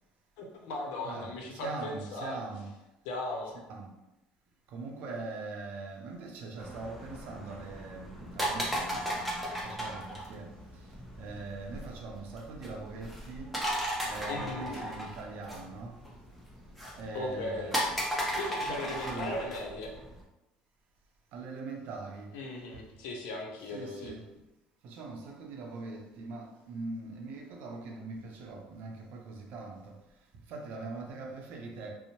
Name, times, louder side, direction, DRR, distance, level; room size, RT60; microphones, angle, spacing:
voice 1, 0.4-2.7 3.0-3.6 14.3-14.8 17.1-17.8 18.4-19.9 22.3-24.2, left 2 dB, 80° left, 0.6 m, -38 dB
voice 2, 1.6-2.6 3.7-3.9 4.7-10.5 11.2-13.6 14.0-16.0 17.0-17.9 18.7-19.4 21.3-22.3 23.7-24.2 24.8-29.9 30.5-31.9, right 3 dB, 65° right, 0.5 m, -41 dB
sound 1, 6.6-20.2, equal, ahead, 0.7 m, -36 dB
2.7 x 2.0 x 2.9 m
supercardioid pair, 105°, 3 cm